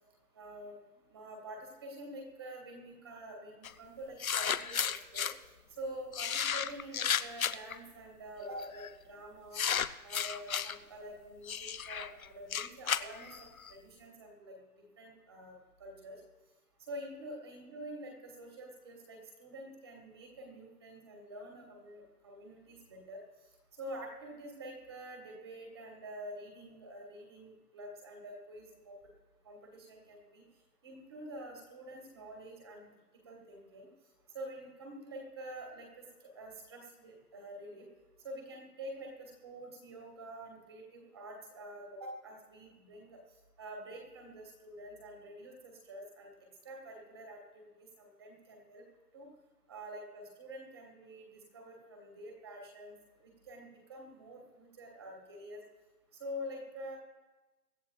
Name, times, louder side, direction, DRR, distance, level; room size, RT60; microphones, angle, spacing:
voice 1, 0.3-0.8 1.1-5.3 5.7-9.6 10.0-16.2 16.8-23.2 23.7-29.0 29.4-30.5 30.8-32.9 33.2-33.9 34.3-37.9 38.2-43.2 43.6-48.8 49.1-49.3 49.7-52.9 53.2-55.6 56.1-57.0, right 1 dB, 15° right, 1 dB, 1.5 m, -47 dB
sound 1, 3.6-3.7 4.2-5.3 6.1-7.7 8.6-8.9 9.5-10.7 11.5-13.7, left 8 dB, 60° left, 0.6 m, -33 dB
24.0 x 12.5 x 2.2 m, 1.1 s
hypercardioid pair, 170°, 47 cm